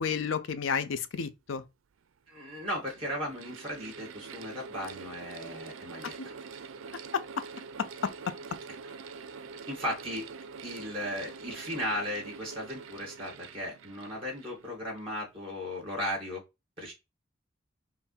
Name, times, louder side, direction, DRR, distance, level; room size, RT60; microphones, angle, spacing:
voice 1, 0.0-1.6 6.2-6.3 7.1-7.2 7.8-8.1, left 6 dB, 75° left, 0.5 m, -31 dB
Mechanical fan, 1.6-1.7 2.5-15.2, right 5 dB, 80° right, 0.5 m, -45 dB
voice 2, 2.3-6.3 9.7-10.3 10.6-16.4 16.8-16.9, equal, 30° right, 2.4 m, -36 dB
5.6 x 2.1 x 4.2 m
head